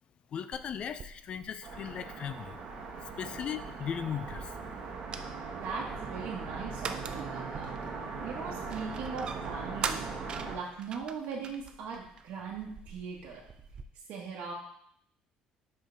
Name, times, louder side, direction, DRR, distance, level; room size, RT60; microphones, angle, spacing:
voice 1, 0.3-2.6 3.0-4.6, left 8 dB, 40° left, 12 dB, 0.4 m, -37 dB
sound 1, 0.5-13.9, right 6 dB, 35° right, 0.4 m, -44 dB
sound 2, 1.6-10.6, right 4 dB, 50° right, 1.4 m, -40 dB
voice 2, 5.3-7.8 8.2-10.1 10.5-13.4 13.9-14.5, right 5 dB, 70° right, -5 dB, 1.2 m, -40 dB
5.6 x 5.1 x 3.9 m, 0.68 s
cardioid pair, 155°, 3 cm